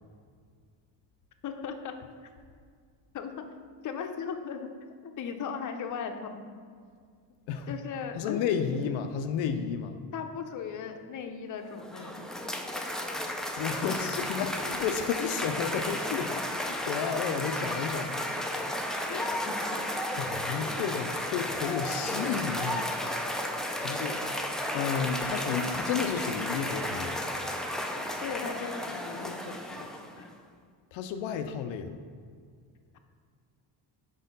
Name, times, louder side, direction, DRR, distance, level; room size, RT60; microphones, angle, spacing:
voice 1, 1.4-2.0 3.1-3.5 3.8-6.4 7.7-8.4 8.7-8.8 10.1-12.3 19.1-19.8 28.2-29.9 30.2-30.3, left 6 dB, 45° left, 5 dB, 0.6 m, -37 dB
voice 2, 8.2-10.0 13.6-18.2 20.2-22.9 23.8-24.2 24.7-27.2 30.9-32.0, left 7 dB, 90° left, 7 dB, 0.5 m, -32 dB
Cheering / Applause, 11.6-30.3, left 1 dB, ahead, 0.3 m, -33 dB
5.1 x 4.4 x 5.2 m, 2.1 s
cardioid pair, 100°, 44 cm